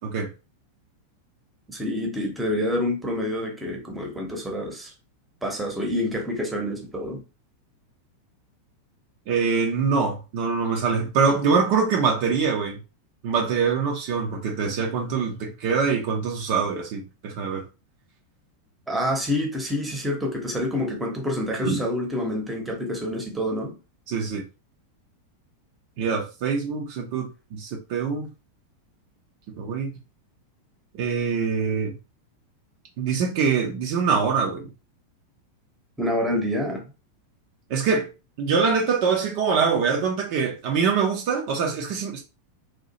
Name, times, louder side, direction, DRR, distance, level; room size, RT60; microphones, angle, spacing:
voice 1, 1.7-4.9 5.4-7.2 18.9-23.7 36.0-36.8, left 1 dB, 10° right, 0.9 m, -27 dB
voice 2, 9.3-12.8 13.2-17.6 21.6-21.8 24.1-24.4 26.0-28.3 29.6-29.9 30.9-31.9 33.0-34.7 37.7-38.1 38.4-42.2, right 5 dB, 45° right, 0.6 m, -24 dB
2.8 x 2.3 x 2.8 m
figure-of-eight pair, 90°, 0 cm